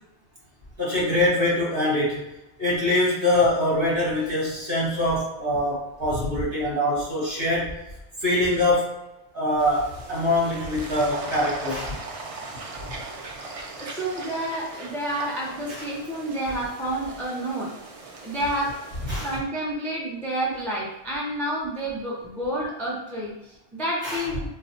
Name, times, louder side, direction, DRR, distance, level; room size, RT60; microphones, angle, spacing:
voice 1, 0.8-2.2 2.6-7.8 8.2-9.0 9.3-12.0 15.7-15.8 19.1-19.3 24.0-24.2, left 1 dB, 50° right, -7 dB, 1.6 m, -24 dB
sound 1, 9.6-19.4, right 3 dB, 70° right, 0.3 m, -39 dB
voice 2, 13.8-17.7 18.2-18.8 19.2-24.5, right 1 dB, ahead, -5 dB, 0.5 m, -29 dB
3.2 x 2.2 x 4.0 m, 0.94 s
omnidirectional pair, 1.2 m